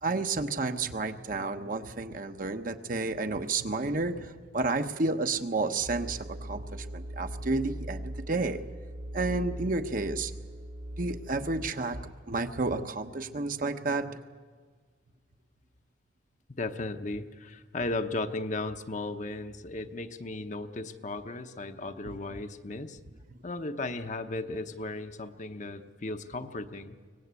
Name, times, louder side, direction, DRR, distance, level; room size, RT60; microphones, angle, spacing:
voice 1, 0.0-8.7 9.1-10.3 11.0-14.2 23.3-23.4, right 3 dB, 50° right, 7 dB, 1.0 m, -31 dB
sound 1, 5.8-11.7, right 1 dB, 85° right, 4.1 m, -40 dB
voice 2, 16.6-23.0 23.4-27.0, left 2 dB, 45° left, 7 dB, 0.9 m, -36 dB
24.0 x 19.0 x 8.3 m, 1.5 s
head